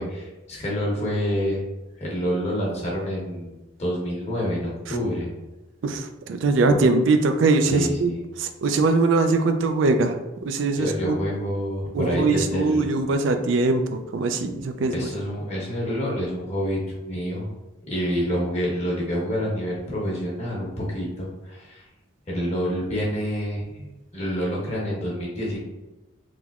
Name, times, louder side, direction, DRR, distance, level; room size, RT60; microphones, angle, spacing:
voice 1, 0.0-1.6 2.0-3.5 3.8-5.3 7.7-8.2 10.8-12.9 14.9-17.5 17.9-21.8 22.3-25.6, equal, 35° left, -4 dB, 1.1 m, -27 dB
voice 2, 5.8-8.1 8.4-10.2 10.4-11.2 11.9-15.0, right 3 dB, 80° right, 7 dB, 0.4 m, -21 dB
3.7 x 2.9 x 2.4 m, 1.0 s
head